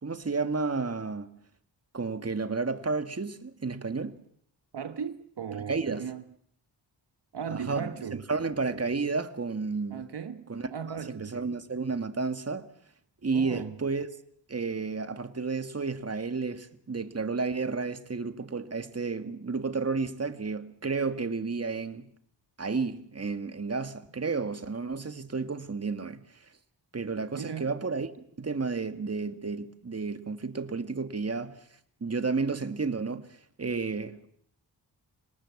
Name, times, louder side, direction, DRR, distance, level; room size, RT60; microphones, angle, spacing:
voice 1, 0.0-1.4 1.9-4.2 5.5-6.1 7.5-10.0 10.5-12.7 13.2-14.1 14.5-22.1 22.6-26.5 26.9-28.1 28.4-31.6 32.0-34.3, right 4 dB, 35° right, 1.9 m, -32 dB
voice 2, 4.7-6.2 7.3-8.2 9.9-11.5 13.3-13.8 27.3-27.7, right 7 dB, 60° right, 1.4 m, -37 dB
26.5 x 19.0 x 7.3 m
cardioid pair, 70°, 45 cm